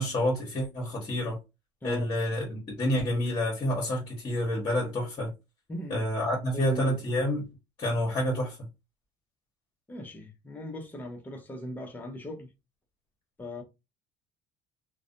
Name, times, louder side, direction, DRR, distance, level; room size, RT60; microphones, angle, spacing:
voice 1, 0.0-1.4 1.8-5.3 5.9-7.4 7.8-8.6, equal, 40° left, 1.1 m, -28 dB
voice 2, 5.7-6.0 6.5-7.0 9.9-12.5 13.4-13.6, equal, 15° left, 0.7 m, -38 dB
2.4 x 2.2 x 2.5 m
supercardioid pair, 100°, 12 cm